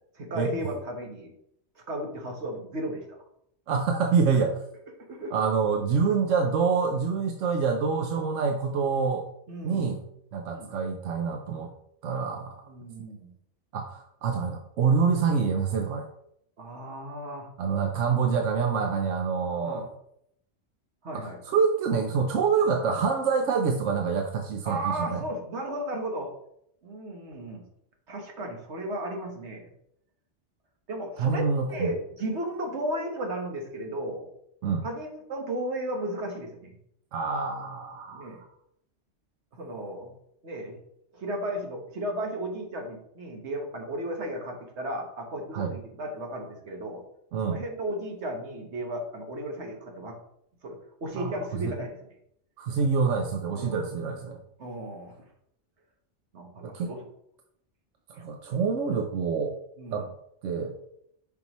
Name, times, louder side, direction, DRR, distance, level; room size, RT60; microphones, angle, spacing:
voice 1, 0.1-1.3 1.9-3.0 5.1-5.3 8.1-8.2 9.5-9.9 10.5-10.7 12.6-13.3 16.6-17.5 19.6-19.9 21.0-21.4 24.6-26.3 26.8-27.6 28.1-29.7 30.9-34.3 34.8-36.7 38.1-38.4 39.5-40.1 40.4-40.7 41.1-47.0 47.4-50.2 50.6-52.0 53.5-53.8 54.6-55.2 56.3-57.0 58.2-58.6 59.8-60.1, right 1 dB, 70° right, 2 dB, 1.6 m, -34 dB
voice 2, 3.7-4.6 5.3-9.3 9.6-10.0 10.3-11.7 12.0-12.6 13.7-16.0 17.6-19.9 21.1-25.2 31.2-31.9 34.6-34.9 37.1-38.3 45.5-45.7 47.3-47.6 51.2-51.3 51.6-51.7 52.6-54.4 56.6-56.9 58.1-59.5 59.9-60.1 60.4-60.8, right 5 dB, 90° right, 4 dB, 1.0 m, -26 dB
7.1 x 5.8 x 3.1 m, 0.73 s
omnidirectional pair, 1.2 m